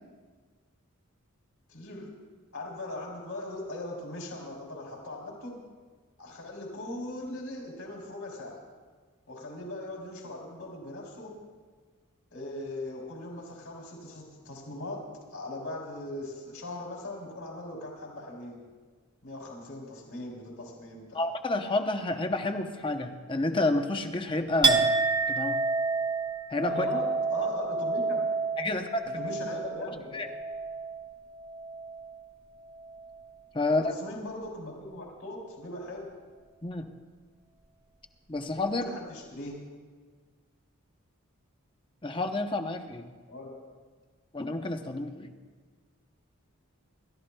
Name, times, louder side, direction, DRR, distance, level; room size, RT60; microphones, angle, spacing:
voice 1, 1.7-2.1 2.5-5.6 6.2-8.6 9.3-11.3 12.3-15.0 15.3-18.6 19.2-21.2 26.7-28.3 29.0-30.3 33.7-36.1 38.8-39.5 43.3-43.5, left 1 dB, 70° left, -2 dB, 3.3 m, -39 dB
voice 2, 21.1-24.9 25.3-25.6 26.5-26.9 28.6-29.2 30.1-30.3 33.5-33.9 36.6-36.9 38.3-38.8 42.0-43.1 44.3-45.3, left 2 dB, 20° left, 6 dB, 0.7 m, -29 dB
Chink clink, 24.6-32.3 32.7-33.3, right 4 dB, 20° right, 0.5 m, -29 dB
28.0 x 13.5 x 2.3 m, 1.5 s
head